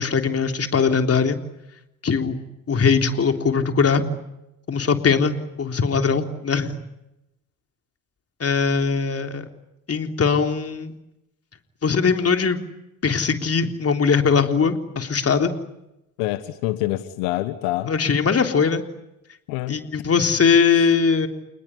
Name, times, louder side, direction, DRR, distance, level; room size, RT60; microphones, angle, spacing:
voice 1, 0.0-1.4 2.0-4.0 4.7-6.8 8.4-9.5 9.9-11.0 11.8-12.6 13.0-15.5 17.9-18.8 19.7-21.3, left 5 dB, 40° left, 6 dB, 3.7 m, -20 dB
voice 2, 16.2-17.9 19.5-19.8 20.7-20.9, left 16 dB, 85° left, 11 dB, 1.6 m, -26 dB
28.5 x 20.5 x 9.9 m, 0.89 s
supercardioid pair, 70°, 39 cm